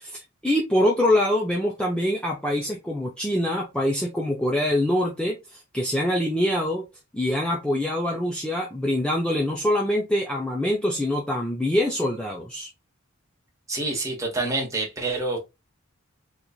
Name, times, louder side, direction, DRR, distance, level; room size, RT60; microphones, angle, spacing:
voice 1, 0.0-6.8 7.1-12.7, left 1 dB, 5° left, 0.5 m, -24 dB
voice 2, 13.7-15.4, right 2 dB, 15° right, 1.1 m, -27 dB
3.9 x 3.0 x 2.3 m
head